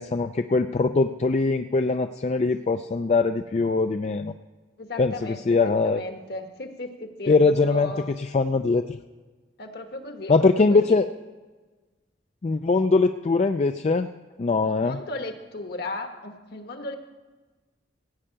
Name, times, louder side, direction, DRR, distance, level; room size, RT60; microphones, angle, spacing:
voice 1, 0.0-4.3 5.0-6.0 7.3-7.9 8.2-9.0 10.3-11.1 12.4-14.1 14.4-15.0, left 3 dB, 35° left, 8 dB, 0.4 m, -22 dB
voice 2, 4.8-8.1 9.6-11.0 14.8-17.0, left 1 dB, 60° left, 5 dB, 1.3 m, -36 dB
16.0 x 5.6 x 8.8 m, 1.3 s
head